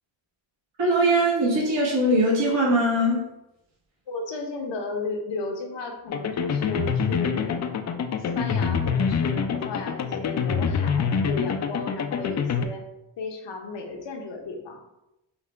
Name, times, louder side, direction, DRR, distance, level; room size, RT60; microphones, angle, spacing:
voice 1, 0.8-3.2, right 1 dB, 70° right, -4 dB, 1.4 m, -21 dB
voice 2, 4.1-7.6 8.2-12.8 13.2-14.8, left 3 dB, 65° left, 3 dB, 0.9 m, -34 dB
sound 1, 6.1-12.7, left 6 dB, 40° left, 0.4 m, -26 dB
5.5 x 2.2 x 3.3 m, 0.92 s
cardioid pair, 55°, 46 cm